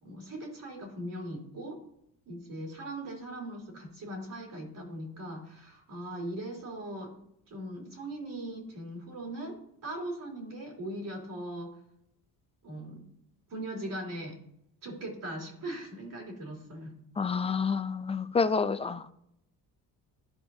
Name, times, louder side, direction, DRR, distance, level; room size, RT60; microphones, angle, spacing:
voice 1, 0.0-1.8 2.2-7.1 7.5-11.7 12.6-13.1 13.5-14.4 14.8-17.0, right 1 dB, 55° right, -1 dB, 3.2 m, -40 dB
voice 2, 17.2-19.1, left 5 dB, 15° left, 13 dB, 0.3 m, -28 dB
13.0 x 4.6 x 2.6 m, 0.74 s
cardioid pair, 100°, 38 cm